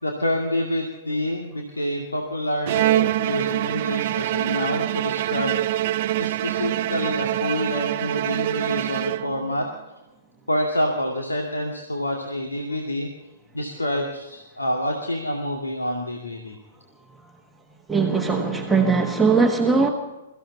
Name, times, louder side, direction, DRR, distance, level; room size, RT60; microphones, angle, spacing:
voice 1, 0.0-5.9 6.2-9.7 10.5-13.1 13.5-16.6, left 1 dB, 80° left, 1 dB, 2.3 m, -27 dB
Bowed string instrument, 2.7-9.6, right 14 dB, 45° right, 0.5 m, -25 dB
voice 2, 17.9-19.9, right 4 dB, 5° right, 0 dB, 1.4 m, -20 dB
23.0 x 15.0 x 4.2 m, 1.0 s
figure-of-eight pair, 115°, 0 cm